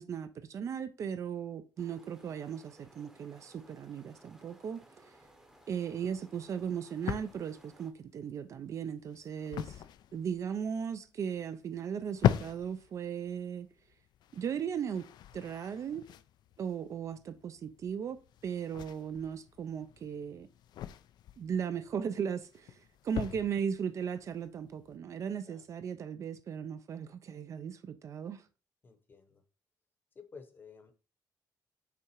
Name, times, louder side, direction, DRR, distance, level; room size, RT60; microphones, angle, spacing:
voice 1, 0.0-5.1 5.7-9.9 10.1-13.7 14.3-15.1 15.3-16.1 16.6-20.5 21.4-22.8 23.0-28.4, right 7 dB, 45° right, 0.4 m, -37 dB
sound 1, 1.8-7.9, right 1 dB, 5° right, 0.8 m, -60 dB
sound 2, 5.2-25.0, left 11 dB, 70° left, 0.4 m, -40 dB
voice 2, 28.8-29.4 30.1-30.9, left 5 dB, 25° left, 0.8 m, -53 dB
5.8 x 3.6 x 4.5 m
cardioid pair, 175°, 8 cm